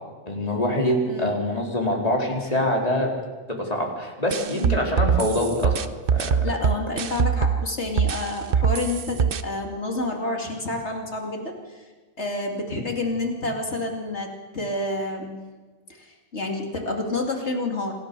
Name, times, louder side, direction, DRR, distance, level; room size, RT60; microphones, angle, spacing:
voice 1, 0.3-3.1 3.5-5.8 6.1-6.4, left 1 dB, 25° left, 0 dB, 3.8 m, -24 dB
sound 1, 4.3-7.6 8.0-9.4, right 7 dB, 50° right, 0.8 m, -22 dB
voice 2, 6.4-11.8 12.2-15.4 15.9-17.9, left 2 dB, 55° left, 2 dB, 2.8 m, -29 dB
26.5 x 14.5 x 6.8 m, 1.3 s
omnidirectional pair, 1.4 m